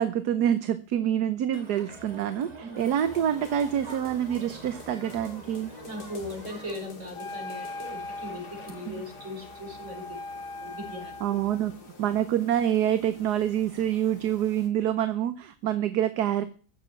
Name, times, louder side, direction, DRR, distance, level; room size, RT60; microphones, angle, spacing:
voice 1, 0.0-5.7 8.9-9.0 11.2-11.7 12.0-16.4, right 10 dB, 75° right, 12 dB, 1.4 m, -26 dB
Crowd, 1.5-6.8, right 3 dB, 25° right, 2.0 m, -46 dB
sound 1, 2.8-14.7, left 3 dB, 70° left, 2.8 m, -48 dB
voice 2, 5.8-10.0 10.6-11.2, left 1 dB, 45° right, 1 dB, 5.8 m, -39 dB
Wind instrument woodwind instrument, 7.1-11.7, left 2 dB, 50° left, 1.9 m, -40 dB
15.5 x 7.2 x 10.0 m, 0.41 s
omnidirectional pair, 1.8 m